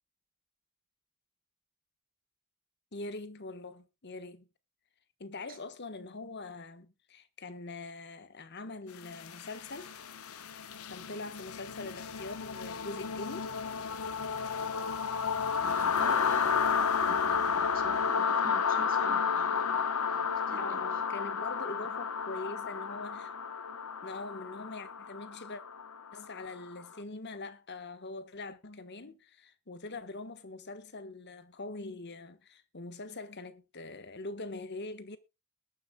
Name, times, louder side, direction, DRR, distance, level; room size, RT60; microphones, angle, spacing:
voice 1, 2.9-4.5 5.2-9.9 10.9-13.5 20.6-23.3 24.0-25.6 26.1-35.2, left 2 dB, 50° left, 1.3 m, -43 dB
sound 1, 9.0-26.8, left 6 dB, 80° left, 1.0 m, -32 dB
voice 2, 15.6-21.0, right 2 dB, 40° right, 2.9 m, -47 dB
21.0 x 10.0 x 2.3 m
head